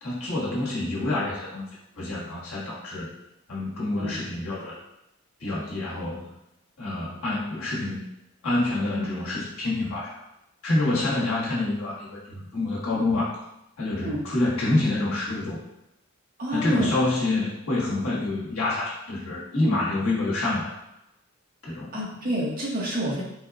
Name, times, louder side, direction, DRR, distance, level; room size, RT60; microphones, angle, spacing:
voice 1, 0.0-1.6 2.0-3.1 3.5-4.8 5.4-6.3 6.8-8.1 8.4-10.2 10.6-13.3 13.8-15.6 16.5-20.7 21.6-21.9, left 2 dB, 75° left, -6 dB, 1.4 m, -27 dB
voice 2, 16.4-16.9 21.9-23.2, right 1 dB, 40° right, -5 dB, 1.0 m, -28 dB
4.2 x 2.3 x 3.4 m, 0.89 s
head